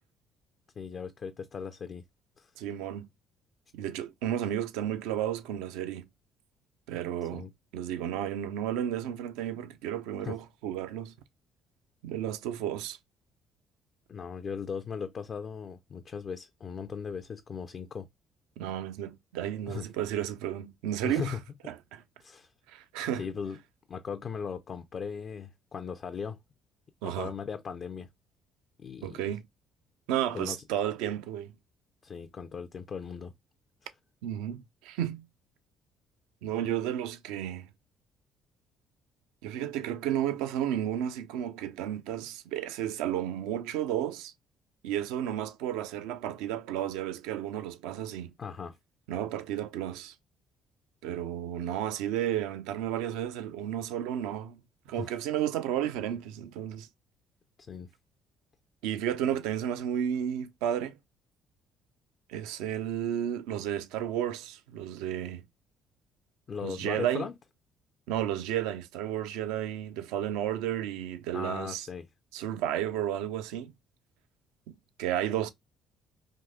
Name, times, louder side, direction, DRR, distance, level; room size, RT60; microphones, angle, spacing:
voice 1, 0.8-2.0 2.4-2.5 7.3-7.5 10.2-10.4 14.1-18.1 19.7-19.9 21.0-21.4 22.2-22.5 23.1-23.6 23.9-26.4 27.0-28.1 28.8-29.2 30.3-30.6 32.0-33.3 33.8-33.9 48.4-48.8 54.9-55.1 57.6-57.9 66.5-67.3 71.3-72.1, left 6 dB, 45° left, 0.4 m, -38 dB
voice 2, 2.6-3.1 3.7-6.1 6.9-7.5 7.7-11.1 12.0-13.0 18.6-21.4 21.7-22.0 22.7-23.3 27.0-27.3 29.0-29.4 30.1-31.5 34.2-35.2 36.4-37.7 39.4-44.3 44.8-48.3 49.1-50.1 51.0-54.6 54.9-56.9 58.8-61.0 62.3-65.4 66.6-67.3 68.1-71.9 72.3-73.7 74.7-75.5, right 11 dB, 75° right, 0.4 m, -32 dB
3.6 x 2.7 x 2.2 m
hypercardioid pair, 55°, 0 cm